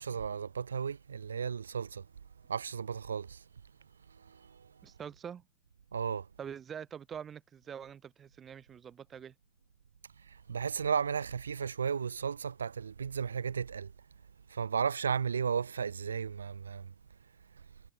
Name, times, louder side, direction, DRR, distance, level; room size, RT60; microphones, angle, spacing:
voice 1, 0.0-2.1 2.5-3.4 4.1-4.7 5.9-6.3 10.2-13.9 14.5-16.9, right 6 dB, 70° right, 5.5 m, -34 dB
voice 2, 4.8-5.4 6.4-9.3, right 8 dB, 25° right, 6.8 m, -45 dB
figure-of-eight pair, 90°, 0 cm